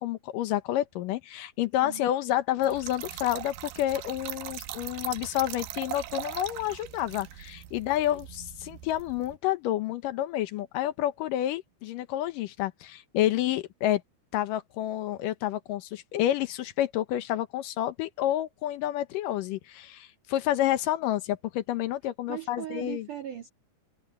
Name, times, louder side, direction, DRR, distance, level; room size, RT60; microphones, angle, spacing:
voice 1, 0.0-14.0 14.3-23.1, left 13 dB, 75° left, 2.1 m, -29 dB
Trickle dribble / Fill (with liquid), 2.6-9.4, right 13 dB, 75° right, 2.9 m, -40 dB
voice 2, 22.3-23.5, right 12 dB, 55° right, 3.4 m, -38 dB
omnidirectional pair, 4.9 m